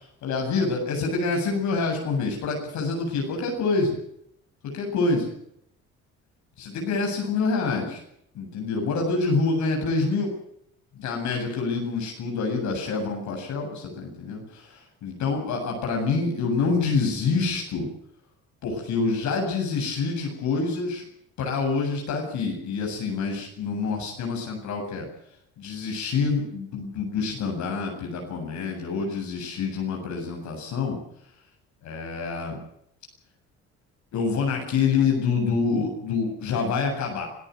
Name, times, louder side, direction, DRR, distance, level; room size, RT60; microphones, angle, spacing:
voice 1, 0.2-4.0 4.7-5.3 6.6-8.0 8.3-10.3 10.9-17.9 18.6-21.0 21.4-25.0 25.6-31.0 31.8-32.6 34.1-37.3, left 4 dB, 75° left, 1 dB, 7.9 m, -26 dB
26.0 x 14.5 x 8.1 m, 0.71 s
cardioid pair, 90°, 29 cm